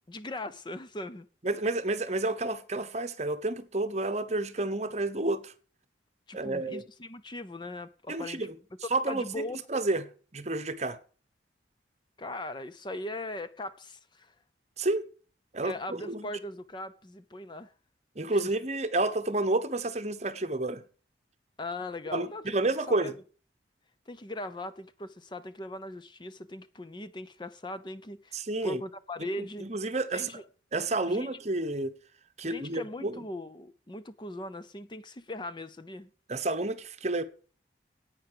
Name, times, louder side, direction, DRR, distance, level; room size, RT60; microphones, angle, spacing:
voice 1, 0.0-1.3 6.3-8.5 9.1-9.6 12.2-14.3 15.6-17.7 18.3-18.5 21.6-22.6 22.9-23.1 24.1-29.7 30.1-30.4 31.1-31.3 32.4-36.1, left 1 dB, 25° left, 0.6 m, -39 dB
voice 2, 1.4-5.5 6.3-6.8 8.1-8.5 8.9-10.0 10.3-11.0 14.8-15.1 15.5-16.3 18.2-20.8 22.1-23.1 28.3-28.8 29.4-30.3 30.7-31.9 32.4-33.2 36.3-37.2, right 2 dB, 35° right, 1.0 m, -30 dB
10.5 x 9.0 x 6.8 m
head